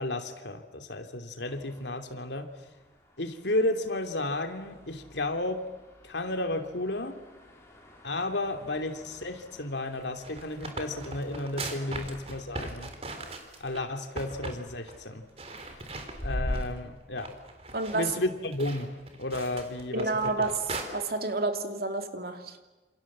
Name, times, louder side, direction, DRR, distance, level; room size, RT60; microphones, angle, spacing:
voice 1, 0.0-2.5 3.2-5.7 6.0-7.2 8.0-12.9 13.6-15.2 15.6-15.8 16.2-17.3 17.9-18.9 19.2-20.3, left 2 dB, 80° left, 6 dB, 2.9 m, -33 dB
sound 1, 1.4-16.5, equal, 15° left, 6.1 m, -46 dB
sound 2, 10.0-13.8 14.2-14.6 14.9-15.0 15.4-16.8 17.2-20.8, right 2 dB, 35° right, 3.8 m, -40 dB
voice 2, 17.7-18.2 19.9-20.7 20.9-22.6, right 3 dB, 55° right, 6 dB, 2.7 m, -29 dB
28.0 x 28.0 x 7.5 m, 1.2 s
head